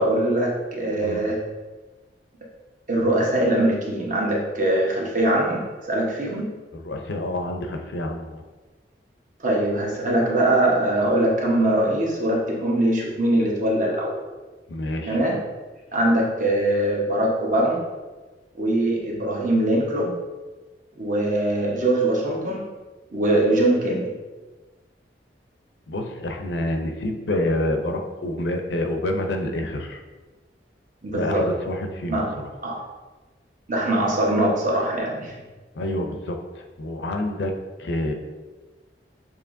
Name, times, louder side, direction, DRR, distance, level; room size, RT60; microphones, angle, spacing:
voice 1, 0.0-1.4 2.9-6.5 9.4-14.1 15.1-15.4 15.9-17.8 18.6-20.1 20.9-22.6 23.1-24.1 31.0-31.5 32.1-32.3 32.6-32.8 33.7-35.3, right 1 dB, 45° right, -2 dB, 1.0 m, -22 dB
voice 2, 6.7-8.4 14.7-15.2 25.9-30.0 31.1-32.5 35.7-37.5 37.8-38.1, left 1 dB, 75° left, 4 dB, 0.5 m, -28 dB
6.7 x 2.9 x 2.6 m, 1.3 s
head